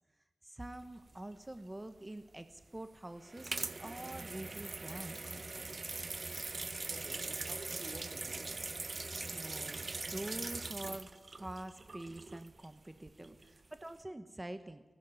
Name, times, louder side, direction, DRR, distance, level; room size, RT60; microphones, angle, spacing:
voice 1, 0.4-5.7 9.3-14.8, right 1 dB, 20° right, 9 dB, 1.0 m, -46 dB
sound 1, 0.6-1.6 2.6-12.7 13.1-13.4 13.7-13.9, right 3 dB, 45° right, 0.5 m, -42 dB
voice 2, 6.8-8.7 13.2-13.5, right 2 dB, 65° right, 0 dB, 3.5 m, -51 dB
17.5 x 17.0 x 9.2 m, 1.2 s
wide cardioid pair, 105°, 0 cm